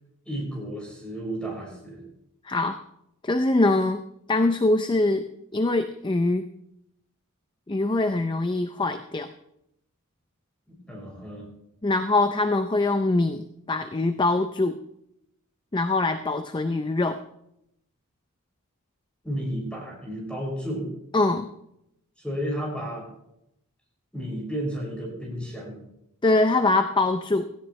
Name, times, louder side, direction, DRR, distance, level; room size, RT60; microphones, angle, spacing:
voice 1, 0.2-2.0 10.7-11.5 19.2-20.9 22.2-23.1 24.1-25.8, equal, 5° left, -3 dB, 6.3 m, -32 dB
voice 2, 2.5-2.8 3.2-4.0 4.3-5.3 5.5-6.5 7.7-9.3 11.8-14.8 15.7-17.2 21.1-21.5 26.2-27.4, left 2 dB, 20° left, 9 dB, 0.5 m, -23 dB
17.0 x 15.5 x 3.2 m, 0.79 s
head